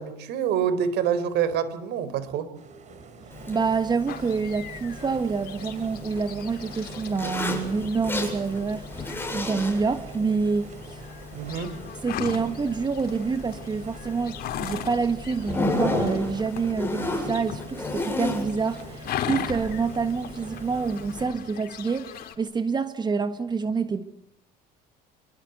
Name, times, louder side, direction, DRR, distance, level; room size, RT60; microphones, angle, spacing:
voice 1, 0.0-2.5 11.3-11.7, right 8 dB, 70° right, 14 dB, 4.1 m, -26 dB
sound 1, 2.6-21.0, right 4 dB, 40° right, 5.3 m, -45 dB
Zipper (clothing), 3.3-21.2, left 2 dB, 10° left, 7.6 m, -34 dB
voice 2, 3.5-11.0 12.0-24.0, right 5 dB, 25° right, 10 dB, 1.5 m, -27 dB
sound 2, 4.1-22.3, left 9 dB, 60° left, 4.3 m, -39 dB
27.0 x 23.5 x 8.1 m, 0.75 s
cardioid pair, 125°, 18 cm